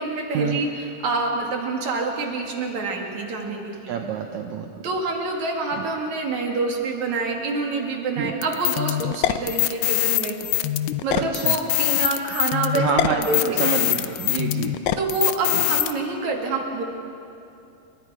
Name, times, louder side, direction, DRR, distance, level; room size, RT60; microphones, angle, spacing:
voice 1, 0.0-3.9 4.8-10.4 11.0-13.6 15.0-16.8, right 3 dB, 50° right, 1 dB, 3.2 m, -27 dB
voice 2, 3.9-4.7 5.8-5.9 8.2-8.3 11.1-11.5 12.8-14.7, right 6 dB, 75° right, 3 dB, 1.7 m, -27 dB
sound 1, 8.4-15.9, left 14 dB, 85° left, 2.0 m, -23 dB
28.5 x 24.0 x 4.9 m, 2.7 s
omnidirectional pair, 4.7 m